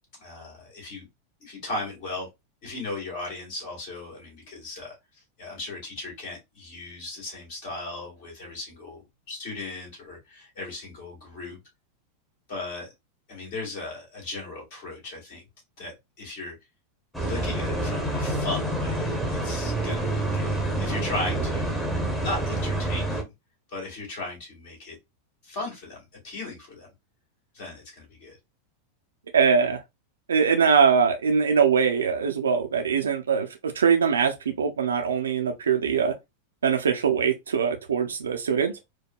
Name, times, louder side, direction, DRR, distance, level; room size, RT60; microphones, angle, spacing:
voice 1, 0.2-1.1 1.4-2.3 2.6-4.9 5.4-11.6 12.5-12.9 13.3-15.4 15.8-16.6 17.2-21.7 22.2-23.3 23.7-25.0 25.4-26.9 27.5-28.4, left 2 dB, 45° left, 2.2 m, -37 dB
sound 1, 17.1-23.2, right 1 dB, 5° left, 1.0 m, -27 dB
voice 2, 29.3-29.8 30.3-36.1 36.6-38.7, right 6 dB, 70° right, 0.5 m, -22 dB
4.6 x 2.1 x 2.3 m
figure-of-eight pair, 90°, 0 cm